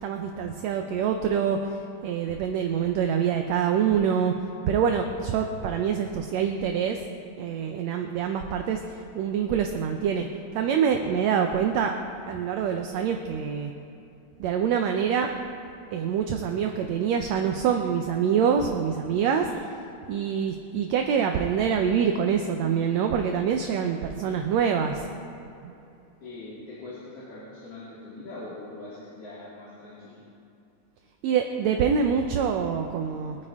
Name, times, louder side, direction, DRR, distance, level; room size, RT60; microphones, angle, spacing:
voice 1, 0.0-4.3 4.7-7.0 7.4-10.3 10.5-11.9 12.3-13.7 14.4-15.3 15.9-19.5 20.1-25.1 25.6-25.7 31.2-33.4, right 7 dB, 75° right, 4 dB, 1.8 m, -25 dB
voice 2, 19.2-19.6 26.2-30.2, left 2 dB, 50° left, -10 dB, 3.9 m, -42 dB
24.0 x 9.5 x 3.6 m, 2.7 s
omnidirectional pair, 3.4 m